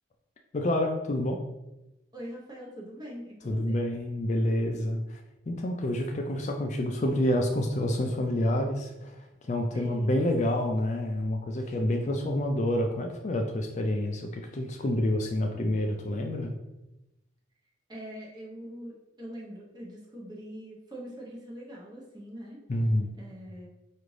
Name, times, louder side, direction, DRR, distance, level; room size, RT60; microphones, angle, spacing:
voice 1, 0.5-1.4 3.5-5.2 5.5-9.1 9.4-16.5 22.7-23.1, left 1 dB, 40° left, 3 dB, 0.4 m, -28 dB
voice 2, 2.1-3.8 9.7-10.2 17.9-22.6 23.2-23.7, equal, 25° right, -3 dB, 0.8 m, -43 dB
4.9 x 2.5 x 3.2 m, 0.95 s
head